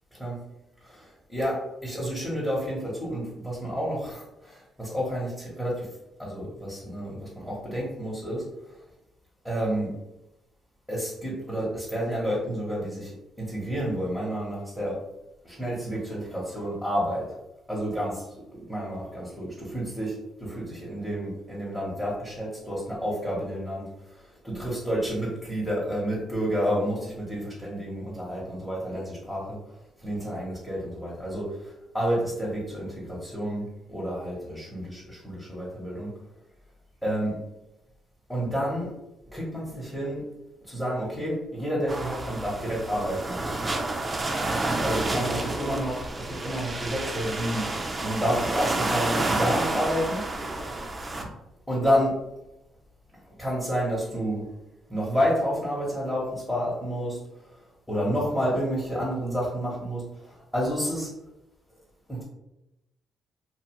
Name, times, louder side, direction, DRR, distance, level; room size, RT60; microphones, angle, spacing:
voice 1, 0.8-5.9 6.2-8.8 9.4-9.9 10.9-15.0 15.4-17.4 17.7-18.3 18.5-29.6 30.0-36.1 37.0-37.4 38.3-38.9 39.3-40.2 40.6-43.4 44.8-47.7 48.0-50.3 51.7-52.2 53.2-54.4 54.9-61.1 62.1-62.2, equal, 10° left, -6 dB, 0.9 m, -30 dB
sound 1, 41.9-51.2, right 2 dB, 25° right, 0.4 m, -29 dB
2.6 x 2.3 x 2.9 m, 0.91 s
cardioid pair, 90°, 0 cm